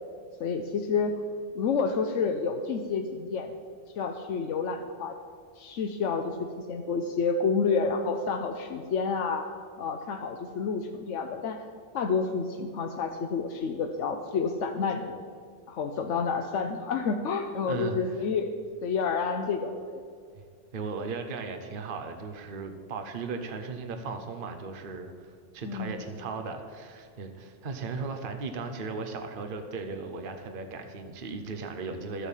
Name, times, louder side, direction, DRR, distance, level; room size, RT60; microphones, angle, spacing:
voice 1, 0.4-1.2 1.5-3.5 4.0-5.2 5.6-9.4 9.8-11.6 11.9-15.2 15.7-18.5 18.8-20.0 25.6-26.0, left 5 dB, 80° left, 5 dB, 1.1 m, -29 dB
voice 2, 17.6-18.2 20.3-20.4 20.7-32.3, right 4 dB, 50° right, 6 dB, 1.1 m, -37 dB
12.0 x 8.2 x 7.2 m, 2.1 s
omnidirectional pair, 1.2 m